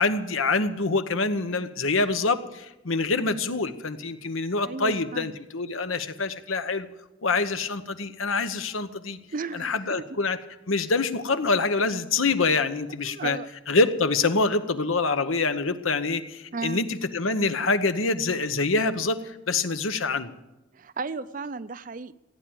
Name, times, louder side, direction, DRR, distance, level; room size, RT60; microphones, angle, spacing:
voice 1, 0.0-6.9 7.2-9.2 9.5-10.4 10.7-13.4 13.7-20.3, left 3 dB, 85° left, 10 dB, 1.1 m, -25 dB
voice 2, 4.6-5.4 9.3-10.2 13.0-13.5 16.5-16.8 20.7-22.1, right 4 dB, 40° right, 15 dB, 0.5 m, -34 dB
16.5 x 9.2 x 8.8 m, 0.96 s
head